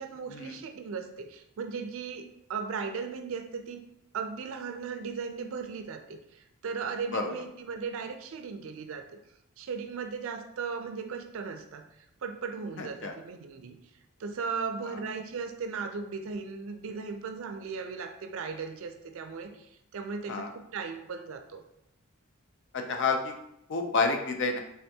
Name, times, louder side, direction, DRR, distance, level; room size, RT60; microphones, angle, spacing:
voice 1, 0.0-3.8 4.1-9.1 9.6-11.9 12.2-13.8 14.2-21.6, right 5 dB, 60° right, 7 dB, 0.4 m, -37 dB
voice 2, 12.8-13.1 14.8-15.0 20.3-20.5 22.7-23.3 23.7-24.6, left 4 dB, 55° left, 4 dB, 0.5 m, -29 dB
3.5 x 3.4 x 2.7 m, 0.78 s
head